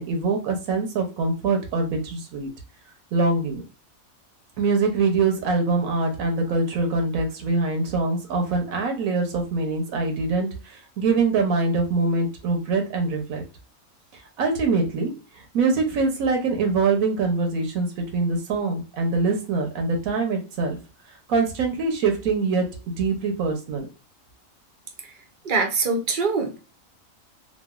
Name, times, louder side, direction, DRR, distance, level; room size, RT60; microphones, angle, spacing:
voice 1, 0.0-2.5 3.1-3.6 4.6-13.4 14.4-20.8 21.3-22.7 23.0-23.9, right 3 dB, 90° right, 3 dB, 1.2 m, -24 dB
voice 2, 25.4-26.6, right 4 dB, 55° right, 3 dB, 0.6 m, -23 dB
3.0 x 2.4 x 2.3 m, 0.33 s
omnidirectional pair, 1.4 m